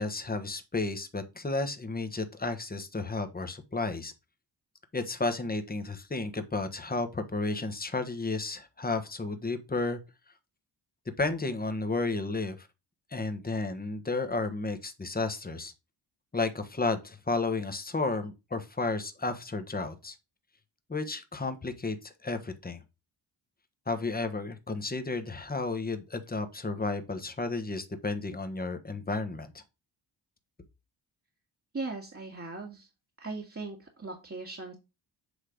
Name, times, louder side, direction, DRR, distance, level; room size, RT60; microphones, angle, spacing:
voice 1, 0.0-4.1 4.9-10.0 11.2-12.7 13.1-15.7 16.3-20.1 20.9-22.8 23.9-29.5, left 3 dB, 20° left, 1.3 m, -32 dB
voice 2, 31.7-32.9 33.2-34.7, right 3 dB, 30° right, 1.8 m, -39 dB
8.3 x 3.2 x 5.0 m
cardioid pair, 65°, 46 cm